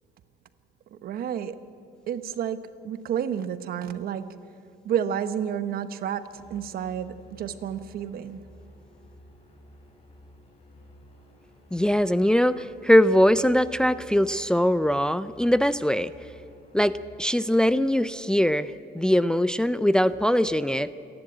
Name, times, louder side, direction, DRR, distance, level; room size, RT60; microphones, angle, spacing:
voice 1, 0.9-1.7 2.1-4.4 4.8-8.4, right 9 dB, 60° right, 1.1 m, -30 dB
sound 1, 6.3-17.2, left 1 dB, 35° left, 5.5 m, -52 dB
voice 2, 11.7-16.1 16.7-16.9 17.2-20.9, equal, 5° left, 0.4 m, -21 dB
28.0 x 11.0 x 9.0 m
cardioid pair, 110°, 17 cm